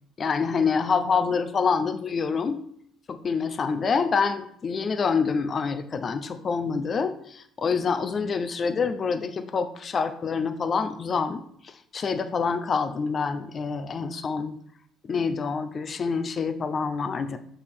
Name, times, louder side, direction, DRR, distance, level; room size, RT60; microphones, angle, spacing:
voice 1, 0.2-2.6 3.1-14.5 15.1-17.4, left 5 dB, 40° left, 9 dB, 0.8 m, -26 dB
6.5 x 5.6 x 6.3 m, 0.65 s
cardioid pair, 95°, 0 cm